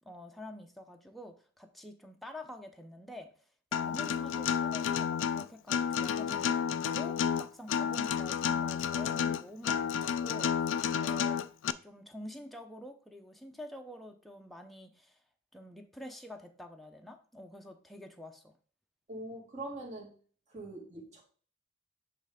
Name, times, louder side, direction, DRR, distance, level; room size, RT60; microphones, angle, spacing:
voice 1, 0.0-3.3 3.7-10.7 11.0-11.5 11.8-15.2 15.5-18.5, left 1 dB, ahead, 0.6 m, -47 dB
Acoustic guitar, 3.7-11.7, left 8 dB, 70° left, 0.3 m, -31 dB
voice 2, 19.1-20.1 20.5-21.2, right 2 dB, 40° right, 2.0 m, -42 dB
7.9 x 3.3 x 4.9 m
head